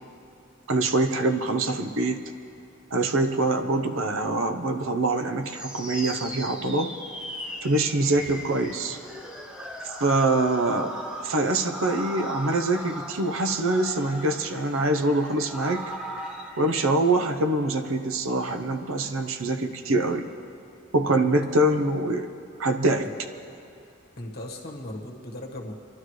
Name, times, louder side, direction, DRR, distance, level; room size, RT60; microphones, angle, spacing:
voice 1, 0.7-2.2 2.9-6.9 7.6-9.0 9.8-10.9 11.2-15.9 16.6-20.3 20.9-22.3 22.6-23.1, right 2 dB, 85° right, 6 dB, 0.9 m, -24 dB
sound 1, 5.5-16.7, equal, 5° right, 0.7 m, -38 dB
voice 2, 21.1-21.4 24.2-25.7, left 1 dB, 50° left, 0 dB, 1.5 m, -38 dB
27.5 x 12.0 x 3.2 m, 2.7 s
head